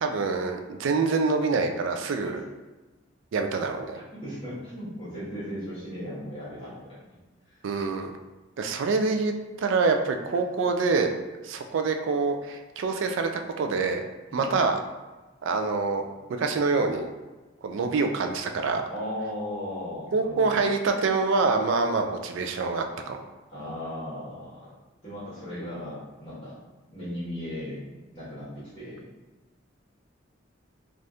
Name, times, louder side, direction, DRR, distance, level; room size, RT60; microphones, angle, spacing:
voice 1, 0.0-2.4 3.3-4.0 7.6-8.1 8.6-9.3 9.6-11.1 11.4-14.1 14.3-14.8 15.4-16.0 16.4-17.1 17.6-18.8 20.1-23.2, right 4 dB, 80° right, 5 dB, 0.4 m, -26 dB
voice 2, 3.9-6.8 7.5-7.6 14.3-14.6 18.9-20.6 23.5-24.6 25.0-26.5 26.9-27.8 28.1-29.0, equal, 30° left, -11 dB, 1.3 m, -36 dB
3.3 x 2.4 x 2.7 m, 1.2 s
head